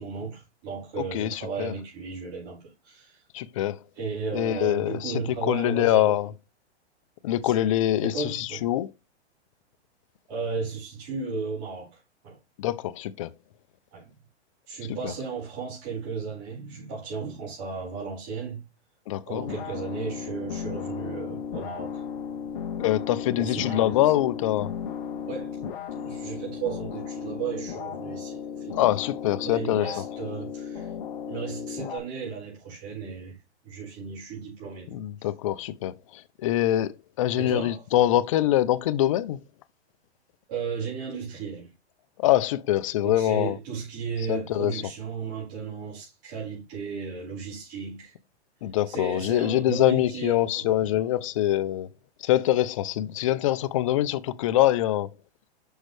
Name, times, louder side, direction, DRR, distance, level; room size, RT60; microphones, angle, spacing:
voice 1, 0.0-3.2 3.9-6.2 7.4-7.5 8.0-8.6 10.3-11.9 12.2-12.4 13.9-14.1 14.7-18.6 19.3-22.0 23.4-24.0 25.3-25.5 25.9-28.9 29.4-30.9 31.3-33.3 33.6-35.0 37.4-37.8 40.5-41.7 43.0-48.1 48.9-51.0, right 5 dB, 35° right, 4.8 m, -35 dB
voice 2, 1.1-1.7 3.3-3.8 4.3-6.3 7.2-8.9 12.6-13.3 15.0-15.1 19.1-19.4 22.8-24.7 28.7-29.9 34.9-39.4 42.2-43.6 44.3-44.8 48.6-51.9 52.2-55.1, left 13 dB, 30° left, 0.4 m, -24 dB
sound 1, 19.4-32.0, left 7 dB, 50° left, 1.3 m, -35 dB
6.3 x 6.2 x 3.2 m
hypercardioid pair, 150°, 34 cm